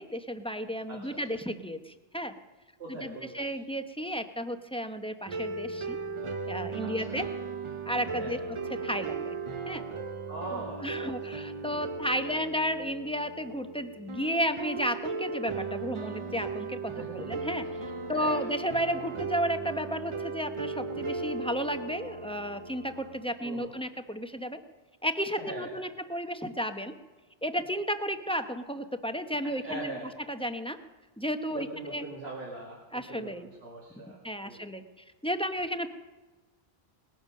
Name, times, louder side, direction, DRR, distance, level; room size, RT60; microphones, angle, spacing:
voice 1, 0.0-2.3 2.9-6.0 6.5-7.3 7.9-9.4 9.7-9.8 10.5-17.7 18.1-24.6 25.0-26.9 27.4-29.9 30.3-30.8 31.2-32.0 32.9-33.5 34.0-35.9, equal, 5° left, 7 dB, 0.7 m, -33 dB
voice 2, 0.9-1.4 2.8-3.5 6.8-7.2 8.1-8.5 10.3-11.4 12.2-12.4 17.0-17.3 17.8-18.4 23.4-23.7 25.4-25.9 29.4-30.1 31.5-34.2 34.4-34.7, right 2 dB, 75° right, -4 dB, 2.6 m, -42 dB
sound 1, 5.3-23.3, right 4 dB, 35° right, 0.6 m, -37 dB
19.5 x 10.5 x 6.4 m, 1.2 s
omnidirectional pair, 1.1 m